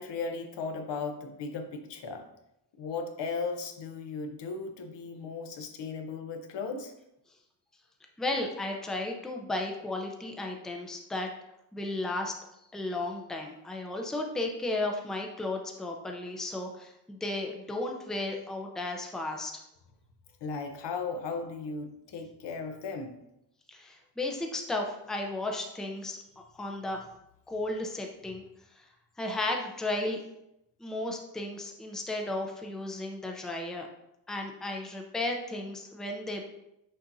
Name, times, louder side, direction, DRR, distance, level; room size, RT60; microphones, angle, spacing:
voice 1, 0.0-2.3 2.8-6.9 20.4-23.2, left 4 dB, 75° left, 5 dB, 0.9 m, -36 dB
voice 2, 8.2-11.3 11.7-12.3 12.7-19.5 23.7-27.0 27.5-28.4 29.2-30.2 30.8-33.9 34.3-36.4, left 2 dB, ahead, 2 dB, 0.5 m, -34 dB
6.5 x 5.9 x 2.6 m, 0.83 s
wide cardioid pair, 170°, 43 cm